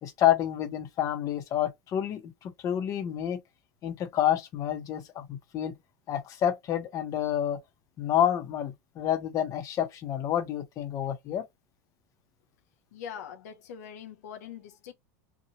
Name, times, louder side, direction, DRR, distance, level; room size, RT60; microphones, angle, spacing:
voice 1, 0.0-3.4 3.8-5.8 6.1-7.6 8.0-11.4, left 10 dB, 40° left, 0.9 m, -29 dB
voice 2, 12.9-14.9, left 8 dB, 80° left, 0.5 m, -42 dB
2.8 x 2.4 x 2.8 m
supercardioid pair, 115°, 9 cm